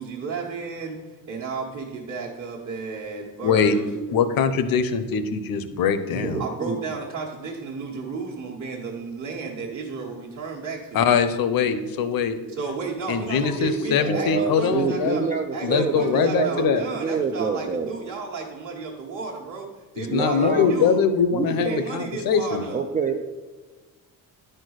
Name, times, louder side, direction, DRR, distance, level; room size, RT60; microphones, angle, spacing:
voice 1, 0.0-3.9 6.4-11.1 12.5-15.2 15.5-21.0 21.4-22.8, right 4 dB, 45° right, -4 dB, 1.3 m, -33 dB
voice 2, 3.4-3.8 4.1-6.4 10.9-12.4 13.1-15.3 15.6-16.8 20.0-22.7, left 6 dB, 65° left, 11 dB, 0.8 m, -22 dB
voice 3, 6.1-6.8 14.0-17.9 20.1-20.9 21.3-21.9 22.7-23.2, right 5 dB, 20° right, 3 dB, 0.4 m, -27 dB
10.0 x 4.5 x 6.4 m, 1.3 s
cardioid pair, 165°, 38 cm